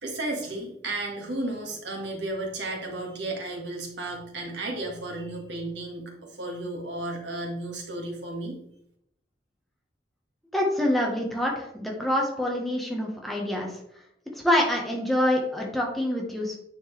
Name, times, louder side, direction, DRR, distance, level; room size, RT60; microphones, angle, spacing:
voice 1, 0.0-8.6, right 2 dB, 75° right, 0 dB, 1.8 m, -33 dB
voice 2, 10.5-13.8 14.3-16.6, left 1 dB, ahead, -1 dB, 1.1 m, -26 dB
9.5 x 4.5 x 3.3 m, 0.74 s
head